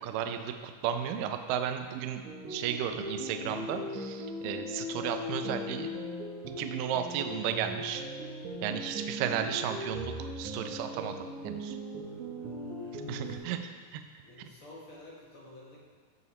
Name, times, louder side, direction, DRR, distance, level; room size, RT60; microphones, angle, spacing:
voice 1, 0.0-2.2 2.5-5.9 6.6-8.0 8.6-11.1 11.4-11.8 12.9-13.6 13.9-14.0, right 9 dB, 80° right, 7 dB, 2.0 m, -34 dB
sound 1, 2.2-13.4, equal, 65° right, 2.6 m, -39 dB
voice 2, 12.0-13.4 14.2-15.8, left 1 dB, 50° left, -4 dB, 1.7 m, -52 dB
15.5 x 5.7 x 3.2 m, 1.5 s
omnidirectional pair, 4.3 m